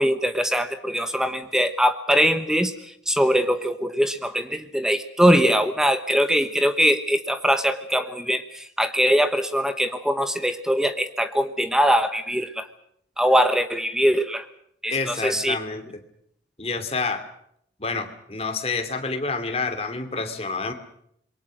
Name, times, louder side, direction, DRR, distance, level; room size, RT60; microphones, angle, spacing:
voice 1, 0.0-12.7 13.2-14.5 14.8-15.6, equal, 5° right, 9 dB, 1.1 m, -22 dB
voice 2, 14.9-15.8 16.6-17.2 17.8-20.7, left 4 dB, 30° left, 7 dB, 2.7 m, -28 dB
27.0 x 23.0 x 6.3 m, 0.71 s
head